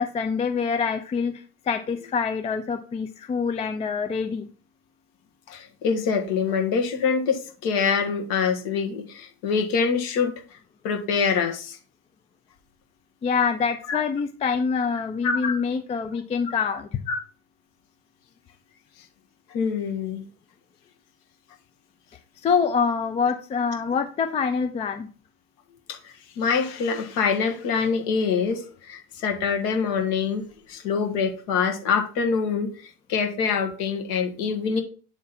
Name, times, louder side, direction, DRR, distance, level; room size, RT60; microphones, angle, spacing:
voice 1, 0.0-4.5 13.2-17.0 22.4-25.1, left 5 dB, 15° left, 7 dB, 0.4 m, -25 dB
voice 2, 5.5-10.3 10.8-11.8 13.9-14.0 15.2-15.6 17.1-17.2 19.5-20.2 25.9-32.7 33.1-34.8, left 5 dB, 50° left, 4 dB, 1.8 m, -25 dB
8.6 x 3.6 x 4.2 m, 0.39 s
hypercardioid pair, 105°, 43 cm